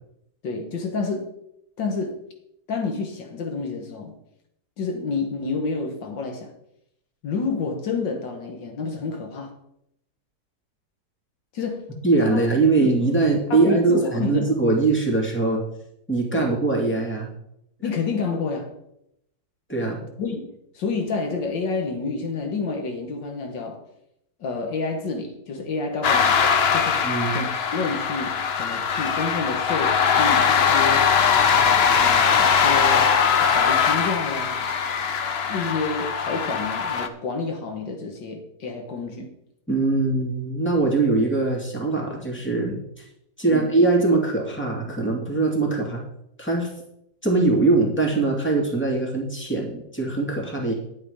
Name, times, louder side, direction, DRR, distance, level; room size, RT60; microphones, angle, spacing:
voice 1, 0.4-1.3 1.8-2.2 2.7-4.2 4.8-6.5 7.2-9.5 11.5-11.9 12.3-12.4 12.8-12.9 13.5-14.5 16.3-16.5 17.8-18.7 20.2-23.8 24.4-26.4 26.7-27.0 27.3-31.1 32.0-34.6 35.5-39.3 43.5-43.7, left 4 dB, 90° left, 2.2 m, -29 dB
voice 2, 12.0-15.6 16.1-17.3 19.7-20.0 27.0-27.4 39.7-43.0 43.4-46.0 46.4-46.7 47.2-50.7, right 3 dB, 5° left, 2.4 m, -22 dB
sound 1, 26.0-37.1, left 6 dB, 55° left, 0.7 m, -21 dB
10.5 x 8.4 x 5.1 m
omnidirectional pair, 1.9 m